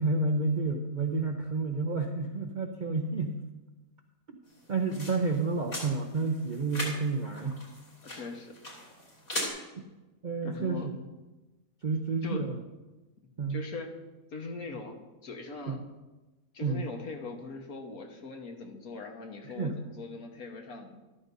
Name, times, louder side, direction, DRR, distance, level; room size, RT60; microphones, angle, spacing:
voice 1, 0.0-3.4 4.3-4.4 4.7-7.6 9.3-9.4 9.8-9.9 10.2-10.9 11.8-12.6 13.4-13.6 15.7-15.8 16.6-16.8 19.6-19.8, right 3 dB, 50° right, 3 dB, 0.5 m, -30 dB
sound 1, 4.5-9.5, left 1 dB, 45° left, 3.5 m, -40 dB
voice 2, 8.0-8.5 10.4-10.9 12.2-12.4 13.5-13.9 14.3-15.0 15.2-15.8 16.5-20.9, left 3 dB, 60° left, 3 dB, 1.7 m, -41 dB
13.5 x 12.5 x 2.7 m, 1.1 s
omnidirectional pair, 1.7 m